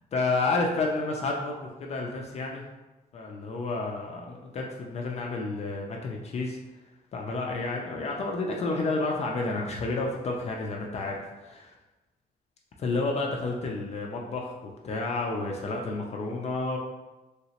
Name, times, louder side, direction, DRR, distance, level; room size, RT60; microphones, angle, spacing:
voice 1, 0.1-2.6 3.1-6.6 7.1-11.7 12.8-16.8, left 3 dB, 40° left, 0 dB, 0.4 m, -30 dB
3.1 x 2.9 x 2.8 m, 1.1 s
cardioid pair, 165°, 17 cm